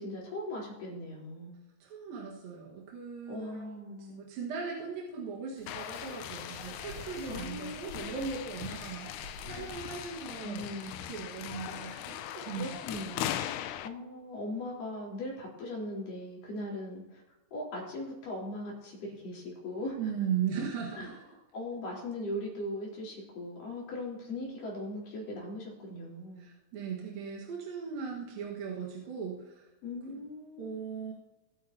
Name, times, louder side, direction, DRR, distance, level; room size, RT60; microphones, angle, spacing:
voice 1, 0.0-1.6 3.3-4.2 7.3-8.2 9.5-9.7 10.4-11.1 12.6-13.5 13.8-17.2 17.5-20.0 21.0-21.2 21.5-26.4 29.8-30.7, left 1 dB, 65° left, -4 dB, 5.6 m, -39 dB
voice 2, 1.8-13.0 20.0-21.1 26.4-29.7 30.1-30.2 30.6-31.1, right 6 dB, 75° right, -3 dB, 3.4 m, -38 dB
sound 1, 5.6-10.3, left 1 dB, 50° right, 5.5 m, -50 dB
sound 2, 5.7-13.9, left 12 dB, 90° left, 1.7 m, -40 dB
21.5 x 9.0 x 2.9 m, 0.99 s
omnidirectional pair, 4.2 m